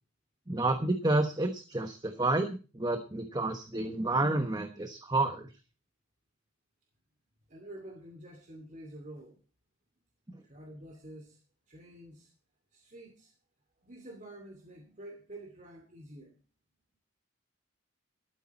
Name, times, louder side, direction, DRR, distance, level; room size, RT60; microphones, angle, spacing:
voice 1, 0.5-5.5 10.3-10.4, right 2 dB, 20° right, 6 dB, 1.2 m, -30 dB
voice 2, 7.5-9.4 10.4-11.4 11.7-12.3 12.7-13.3 13.8-16.3, right 1 dB, 40° right, 2 dB, 2.6 m, -48 dB
13.0 x 13.0 x 4.2 m, 0.34 s
head